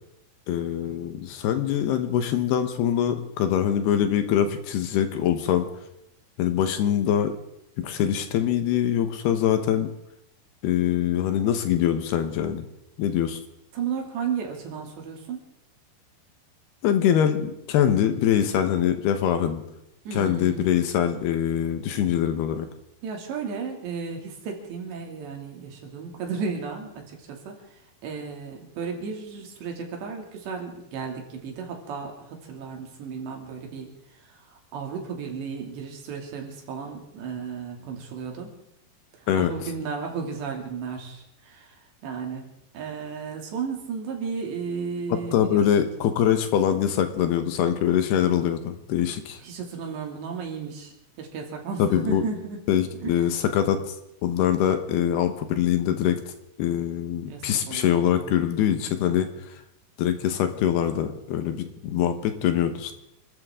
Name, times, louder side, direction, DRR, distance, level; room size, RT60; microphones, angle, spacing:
voice 1, 0.5-5.7 6.4-7.3 7.8-9.9 10.6-12.7 13.0-13.4 16.8-19.6 20.1-22.7 39.3-39.5 45.3-49.4 51.8-52.2 52.7-53.9 54.2-56.2 56.6-59.6 60.0-62.9, left 10 dB, 70° left, 8 dB, 2.9 m, -23 dB
voice 2, 13.7-15.4 20.1-20.7 23.0-38.5 39.2-42.5 42.7-45.9 46.3-46.4 49.4-52.6 53.0-53.2 57.3-58.4, right 6 dB, 70° right, 2 dB, 4.8 m, -34 dB
28.5 x 13.5 x 3.7 m, 0.80 s
omnidirectional pair, 5.2 m